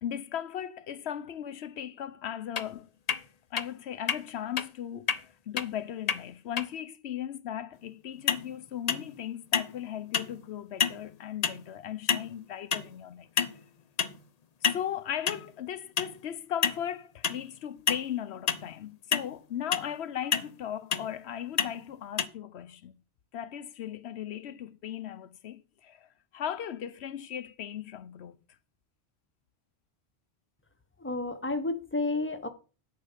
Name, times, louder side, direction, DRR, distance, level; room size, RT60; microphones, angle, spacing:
voice 1, 0.0-2.9 3.5-13.3 13.5-13.6 14.6-23.0 23.3-28.4, left 10 dB, 85° left, 1.0 m, -37 dB
sound 1, 2.6-2.7 3.1-3.2 3.6-3.7 4.1-4.2 4.6-4.7 5.1-5.2 5.6-5.7 6.1-6.2 6.6-6.7 8.3-8.5 8.9-9.2 9.5-9.8 10.1-10.4 10.8-11.0 11.4-11.6 12.1-12.3 12.7-12.9 13.4-13.6 14.0-14.2 14.6-14.8 15.3-15.4 16.0-16.1 16.6-16.8 17.2-17.4 17.9-18.0 18.5-18.7 19.1-19.3 19.7-19.9 20.3-20.5 20.9-21.1 21.6-21.7 22.2-22.3, left 6 dB, 45° left, 0.7 m, -28 dB
voice 2, 31.0-32.5, left 2 dB, 10° left, 1.1 m, -31 dB
9.7 x 5.7 x 7.3 m
omnidirectional pair, 1.1 m